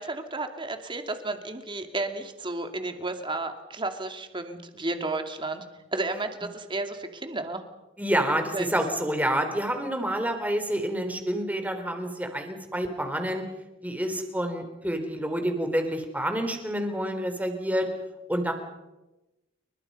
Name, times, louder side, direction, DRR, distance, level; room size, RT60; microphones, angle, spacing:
voice 1, 0.0-5.6 5.9-7.6 8.5-8.7, right 2 dB, 25° right, 6 dB, 2.6 m, -32 dB
voice 2, 8.0-13.4 13.8-17.9 18.3-18.5, right 1 dB, 10° right, 6 dB, 3.8 m, -28 dB
29.5 x 24.0 x 5.6 m, 1.0 s
head